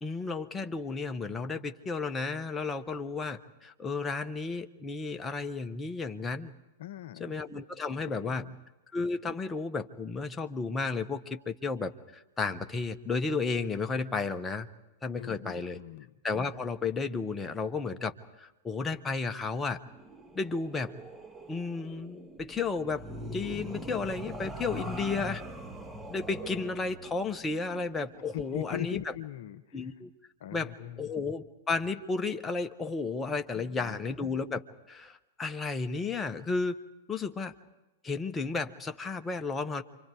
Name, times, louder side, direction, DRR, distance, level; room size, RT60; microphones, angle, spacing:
voice 1, 0.0-6.5 7.2-8.4 8.9-14.7 15.0-15.8 16.2-19.8 20.3-20.9 21.5-23.1 23.3-25.4 26.1-29.1 29.7-30.1 30.5-34.6 34.9-36.8 37.1-37.5 38.0-39.8, left 4 dB, 15° left, 7 dB, 1.2 m, -33 dB
voice 2, 6.8-7.4 8.2-8.6 15.2-16.1 28.3-29.9 30.4-31.1 33.5-34.0, left 13 dB, 55° left, 11 dB, 0.9 m, -41 dB
sound 1, 19.9-28.8, equal, 10° right, 1.6 m, -43 dB
28.0 x 25.0 x 4.9 m, 1.0 s
figure-of-eight pair, 95°, 0 cm